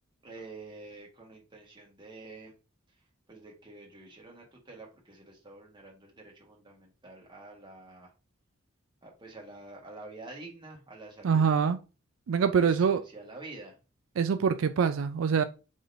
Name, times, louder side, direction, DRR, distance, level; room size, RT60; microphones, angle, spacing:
voice 1, 0.2-2.5 3.3-8.1 9.0-11.6 12.6-13.8, right 2 dB, 25° right, 1.6 m, -48 dB
voice 2, 11.2-11.8 12.3-13.0 14.2-15.4, right 6 dB, 85° right, 0.4 m, -24 dB
4.8 x 3.8 x 2.6 m
head